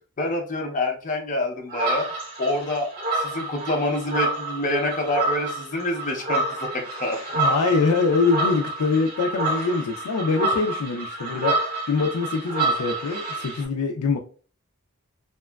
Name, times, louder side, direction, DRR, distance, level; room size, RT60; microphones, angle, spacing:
voice 1, 0.2-2.1 2.4-7.2, left 1 dB, 35° left, 2 dB, 0.7 m, -27 dB
sound 1, 1.7-13.6, right 2 dB, 45° right, 1.4 m, -28 dB
voice 2, 7.4-11.6 11.9-14.2, left 4 dB, 85° left, 1 dB, 0.4 m, -23 dB
2.8 x 2.3 x 2.2 m, 0.39 s
head